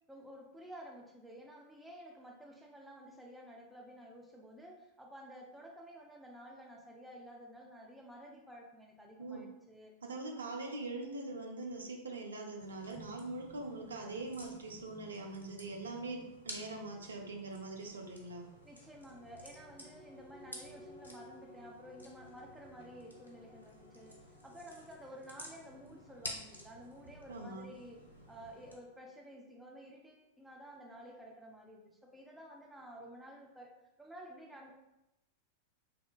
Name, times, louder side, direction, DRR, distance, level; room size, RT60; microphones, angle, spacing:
voice 1, 0.1-9.9 18.6-28.0 28.3-33.7 34.0-34.7, equal, 5° right, 0 dB, 0.4 m, -52 dB
voice 2, 10.0-18.5 27.3-27.7, right 2 dB, 70° right, 2 dB, 0.4 m, -42 dB
sound 1, 12.6-28.8, left 1 dB, 85° left, 0.4 m, -52 dB
sound 2, 19.0-29.8 30.2-30.3, left 1 dB, 50° right, 1.4 m, -60 dB
2.8 x 2.1 x 2.3 m, 0.91 s
figure-of-eight pair, 90°, 0 cm